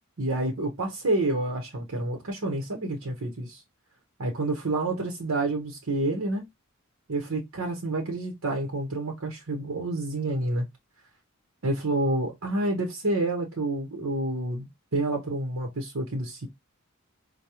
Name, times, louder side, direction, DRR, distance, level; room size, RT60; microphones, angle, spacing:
voice 1, 0.2-3.6 4.2-6.4 7.1-10.7 11.6-16.5, right 2 dB, 75° right, 0.9 m, -28 dB
4.7 x 2.2 x 2.8 m
head